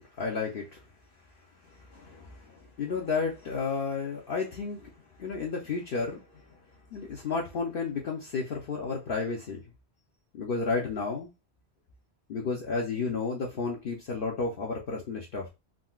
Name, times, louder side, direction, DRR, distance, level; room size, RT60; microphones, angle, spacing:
voice 1, 0.2-0.8 1.6-6.6 6.9-9.6 10.3-11.3 12.3-15.5, left 4 dB, 60° left, 0.7 m, -32 dB
3.7 x 2.1 x 2.3 m
omnidirectional pair, 1.1 m